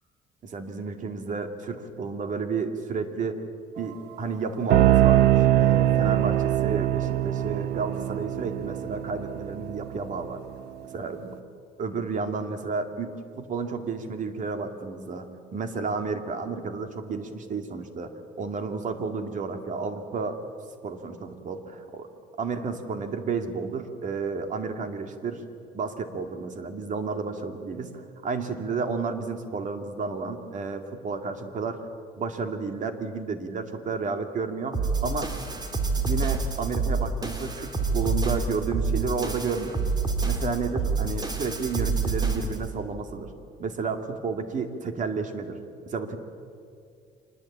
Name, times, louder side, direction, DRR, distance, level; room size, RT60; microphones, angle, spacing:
voice 1, 0.4-3.4 3.8-10.4 10.9-11.3 11.8-20.4 20.8-22.1 22.4-25.4 25.7-31.8 32.2-35.6 36.0-39.9 40.2-43.3 43.6-45.6 45.9-46.2, right 4 dB, 50° right, 7 dB, 2.3 m, -31 dB
sound 1, 4.7-10.3, right 13 dB, 80° right, 0.8 m, -22 dB
sound 2, 34.7-42.7, right 4 dB, 25° right, 2.8 m, -27 dB
25.5 x 20.0 x 8.7 m, 2.3 s
cardioid pair, 110°, 17 cm